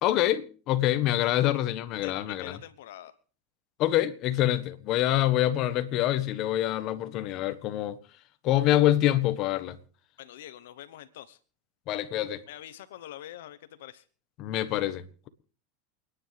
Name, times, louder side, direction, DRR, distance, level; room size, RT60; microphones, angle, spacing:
voice 1, 0.0-2.6 3.8-8.0 8.4-9.8 11.9-12.4 14.4-15.3, left 13 dB, 50° left, 1.4 m, -26 dB
voice 2, 2.0-3.1 10.2-11.4 12.5-14.0, left 12 dB, 80° left, 1.0 m, -45 dB
28.5 x 10.0 x 3.4 m
supercardioid pair, 115°, 0 cm